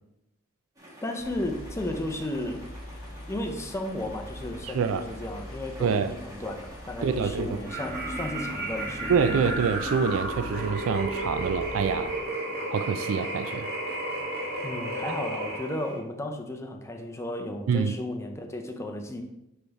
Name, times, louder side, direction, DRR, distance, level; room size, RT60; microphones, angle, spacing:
Excavator motor, 0.8-10.7, equal, 15° right, 1.4 m, -48 dB
voice 1, 1.0-2.7 3.3-9.5 14.6-19.2, left 1 dB, 15° left, 4 dB, 0.6 m, -34 dB
sound 1, 1.2-12.2, left 1 dB, 45° left, 0.8 m, -43 dB
voice 2, 4.6-5.0 5.8-6.1 7.0-7.6 9.1-12.2 12.7-13.7 17.7-17.9, right 6 dB, 75° right, 10 dB, 0.4 m, -26 dB
sound 2, 7.6-16.0, right 1 dB, 50° right, 2.0 m, -33 dB
9.1 x 3.4 x 3.5 m, 0.89 s
head